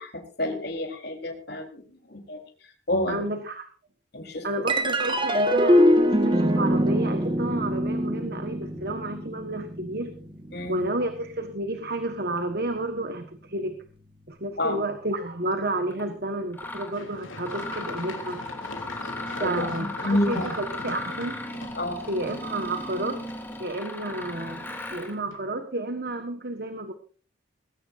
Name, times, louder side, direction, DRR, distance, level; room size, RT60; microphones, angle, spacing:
voice 1, 0.0-1.8 2.1-2.4 2.9-3.3 4.1-4.5 10.5-10.9 14.6-14.8 19.4-20.5 21.7-22.0, left 1 dB, 55° left, 3 dB, 4.0 m, -29 dB
voice 2, 3.1-3.7 4.4-10.1 10.7-13.8 14.3-18.4 19.4-21.4 22.1-23.2 23.6-26.9, right 2 dB, 50° right, 7 dB, 1.5 m, -31 dB
sound 1, 4.7-11.4, equal, 25° right, 1.6 m, -23 dB
Mechanisms, 15.9-16.0 16.5-16.9 17.4-25.2, left 2 dB, 10° left, 3.0 m, -36 dB
Run, 16.9-24.8 25.3-25.4, left 2 dB, 85° left, 3.1 m, -43 dB
20.0 x 16.5 x 2.7 m, 0.39 s
head